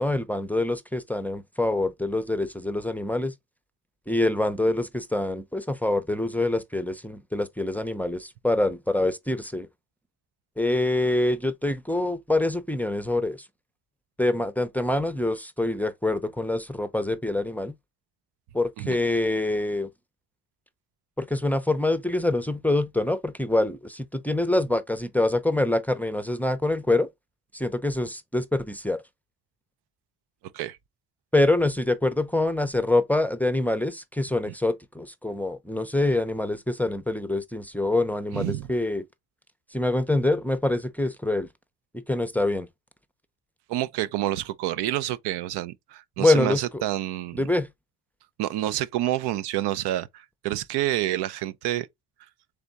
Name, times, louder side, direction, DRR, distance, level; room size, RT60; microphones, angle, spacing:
voice 1, 0.0-3.3 4.1-9.7 10.6-13.4 14.2-17.7 18.5-19.9 21.2-27.1 27.5-29.0 31.3-39.0 39.7-41.5 41.9-42.7 46.2-46.6 47.3-47.7, left 2 dB, 5° left, 0.5 m, -25 dB
voice 2, 38.3-38.7 43.7-47.5 48.4-51.9, right 14 dB, 85° right, 0.6 m, -28 dB
3.5 x 3.4 x 3.9 m
cardioid pair, 85°, 39 cm